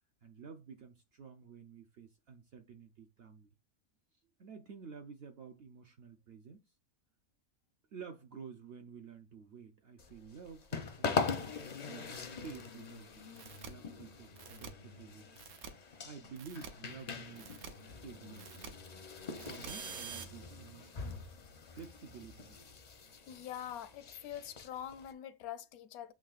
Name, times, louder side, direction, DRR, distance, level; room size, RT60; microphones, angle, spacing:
voice 1, 0.2-3.5 4.4-6.6 7.9-11.4 11.8-15.2 16.0-18.6 19.4-21.2 21.7-22.7, right 6 dB, 60° right, 0.6 m, -51 dB
sound 1, 10.0-25.1, left 5 dB, 50° left, 0.5 m, -42 dB
sound 2, 13.4-13.7 14.4-14.7 15.4-15.7 16.4-16.7 17.4-17.7 18.4-18.7 19.4-20.2, right 7 dB, 80° right, 1.2 m, -46 dB
voice 2, 23.3-26.1, left 10 dB, 80° left, 1.0 m, -44 dB
7.3 x 3.0 x 2.4 m
omnidirectional pair, 1.5 m